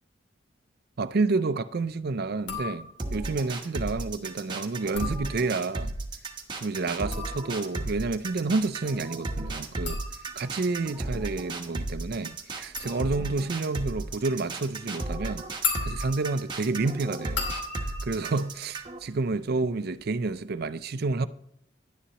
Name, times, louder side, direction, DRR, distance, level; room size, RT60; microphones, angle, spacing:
voice 1, 1.0-5.9 6.6-10.0 10.4-15.5 15.8-17.5 18.0-21.3, right 3 dB, 55° right, 0.5 m, -29 dB
sound 1, 2.4-3.2 4.7-5.8 6.8-19.5 19.8-20.4, left 5 dB, 65° left, 2.6 m, -38 dB
sound 2, 3.0-19.0, right 2 dB, 25° right, 1.1 m, -34 dB
11.0 x 9.9 x 2.9 m
head